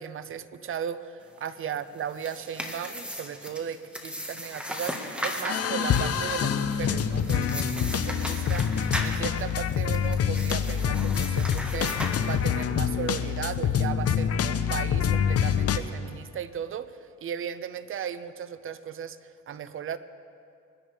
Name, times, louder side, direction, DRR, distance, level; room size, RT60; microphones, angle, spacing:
voice 1, 0.0-20.0, right 8 dB, 45° right, 13 dB, 0.7 m, -36 dB
sound 1, 1.9-12.8, equal, 5° right, 1.5 m, -37 dB
sound 2, 5.5-15.8, left 8 dB, 55° left, 0.7 m, -26 dB
22.5 x 10.5 x 3.5 m, 2.5 s
cardioid pair, 90°, 30 cm